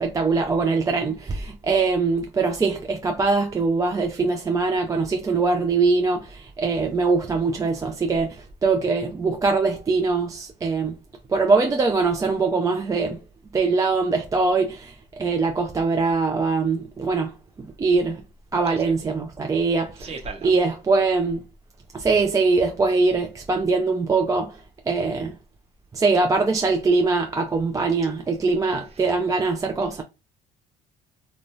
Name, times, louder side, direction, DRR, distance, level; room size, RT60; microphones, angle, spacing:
voice 1, 0.0-11.0 11.3-13.2 13.5-14.9 15.2-17.3 17.6-18.2 18.5-20.1 20.4-21.4 21.9-24.6 24.9-25.3 25.9-30.0, right 4 dB, 20° right, 0.3 m, -22 dB
voice 2, 20.0-20.5 28.9-29.1, right 4 dB, 35° right, 0.9 m, -37 dB
2.6 x 2.1 x 3.0 m
cardioid pair, 110°, 17 cm